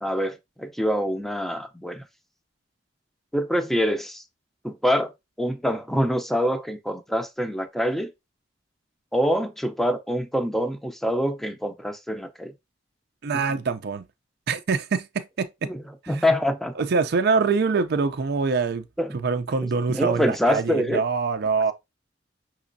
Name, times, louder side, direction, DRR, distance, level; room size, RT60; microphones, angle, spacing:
voice 1, 0.0-2.0 3.3-4.2 4.6-5.1 5.4-8.1 9.1-12.5 13.3-13.4 15.6-16.8 19.0-19.1 19.6-21.0, equal, ahead, 0.6 m, -25 dB
voice 2, 13.2-14.1 14.5-15.5 16.0-16.2 16.8-18.8 19.1-21.7, right 4 dB, 60° right, 0.4 m, -24 dB
6.0 x 3.1 x 2.6 m
head